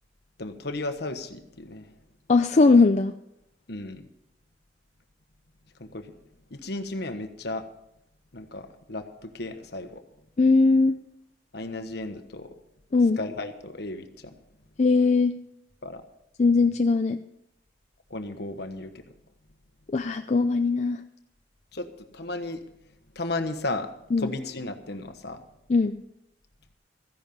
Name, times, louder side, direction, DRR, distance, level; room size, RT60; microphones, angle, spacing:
voice 1, 0.4-1.9 3.7-4.1 5.8-6.1 6.5-7.7 8.3-10.0 11.5-12.5 13.2-14.3 15.8-16.0 18.1-19.0 21.7-22.6 23.1-23.9 24.2-25.4, left 2 dB, 60° left, 8 dB, 1.2 m, -34 dB
voice 2, 2.3-3.1 10.4-11.0 12.9-13.2 14.8-15.4 16.4-17.2 19.9-21.0 24.1-24.3 25.7-25.9, left 3 dB, 40° left, 7 dB, 0.4 m, -20 dB
14.5 x 10.5 x 5.4 m, 0.80 s
head